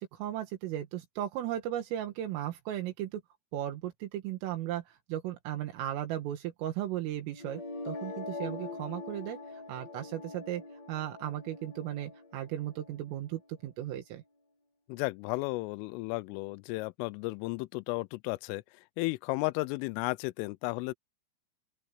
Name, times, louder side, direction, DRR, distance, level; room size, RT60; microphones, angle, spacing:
voice 1, 0.0-3.2 3.5-7.6 7.9-10.6 10.9-14.2, right 12 dB, 80° right, 4.2 m, -36 dB
sound 1, 7.3-13.3, left 3 dB, 45° left, 2.8 m, -43 dB
voice 2, 14.9-18.6 19.0-20.9, left 23 dB, 85° left, 3.1 m, -34 dB
open air
omnidirectional pair, 5.8 m